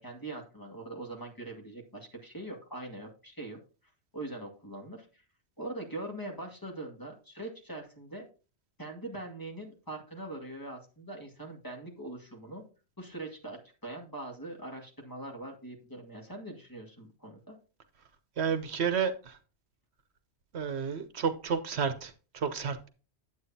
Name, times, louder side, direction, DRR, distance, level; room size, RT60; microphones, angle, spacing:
voice 1, 0.0-3.6 4.1-5.2 5.6-8.3 8.8-12.6 13.0-17.6, right 2 dB, 20° left, 2.1 m, -42 dB
voice 2, 18.4-19.4 20.5-22.9, right 6 dB, 75° right, 1.1 m, -31 dB
9.5 x 8.3 x 2.8 m
omnidirectional pair, 1.1 m